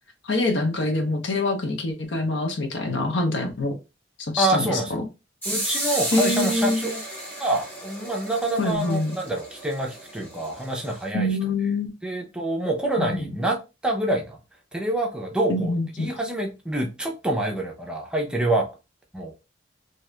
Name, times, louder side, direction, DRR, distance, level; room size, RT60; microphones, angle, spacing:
voice 1, 0.2-3.8 4.2-4.8 6.1-6.9 8.6-9.2 11.1-12.0 13.0-13.3 15.5-16.1, left 2 dB, 75° left, 0.7 m, -25 dB
voice 2, 4.4-5.0 5.5-7.0 7.4-11.3 12.0-13.6 13.8-14.4 14.7-18.7 19.1-19.3, right 1 dB, 5° right, 0.6 m, -26 dB
sound 1, 5.4-11.1, right 1 dB, 10° left, 1.2 m, -33 dB
2.7 x 2.4 x 3.2 m
head